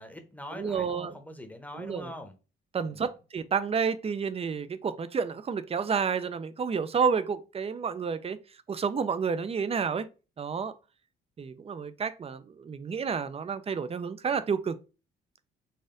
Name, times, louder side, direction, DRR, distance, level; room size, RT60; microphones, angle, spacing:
voice 1, 0.0-2.4 2.8-3.1, left 1 dB, 10° left, 0.9 m, -43 dB
voice 2, 0.5-1.1 1.7-2.1 2.7-8.4 8.7-10.1 10.4-10.7 11.4-14.8, right 6 dB, 30° right, 0.5 m, -30 dB
4.2 x 2.5 x 3.8 m
cardioid pair, 90°, 20 cm